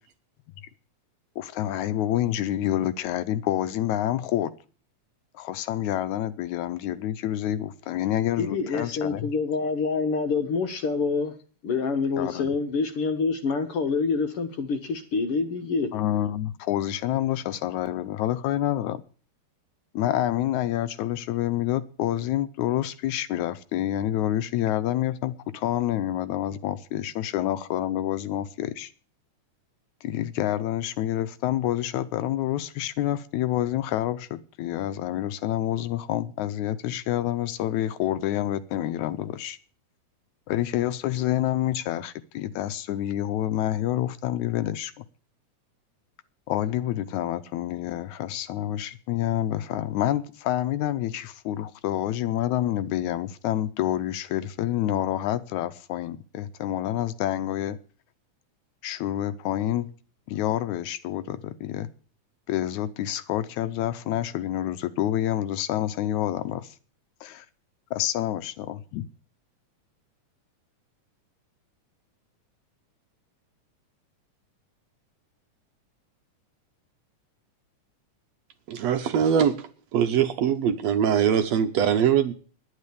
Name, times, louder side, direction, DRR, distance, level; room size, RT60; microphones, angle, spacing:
voice 1, 1.4-4.5 5.3-9.4 12.2-12.5 15.9-19.0 19.9-28.9 30.0-39.6 40.5-45.1 46.5-57.8 58.8-59.9 60.3-61.9 62.5-66.8 67.2-67.5 67.9-69.0, left 12 dB, 75° left, 13 dB, 2.0 m, -28 dB
voice 2, 8.4-11.3 11.6-15.9, left 4 dB, 60° left, 6 dB, 1.7 m, -26 dB
voice 3, 78.7-79.6 79.9-82.3, right 8 dB, 70° right, 8 dB, 1.8 m, -22 dB
10.5 x 9.9 x 6.8 m, 0.40 s
omnidirectional pair, 3.6 m